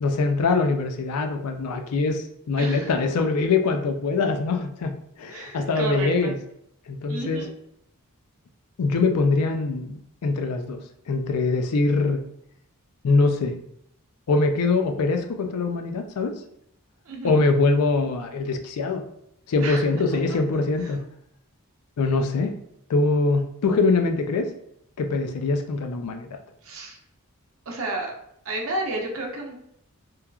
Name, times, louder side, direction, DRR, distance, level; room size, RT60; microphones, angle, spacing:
voice 1, 0.0-6.4 6.9-7.4 8.8-10.8 11.1-12.3 13.0-13.6 14.3-16.3 17.2-19.0 19.5-21.0 22.0-22.5 22.9-24.5 25.0-26.3, left 3 dB, 85° left, 6 dB, 0.4 m, -23 dB
voice 2, 2.6-2.9 5.3-6.3 7.1-7.5 17.1-17.4 19.6-19.9 20.3-20.4 20.8-20.9 26.6-27.0 27.7-28.1 28.4-29.6, right 2 dB, 65° right, 0 dB, 0.7 m, -31 dB
3.1 x 2.3 x 2.2 m, 0.74 s
head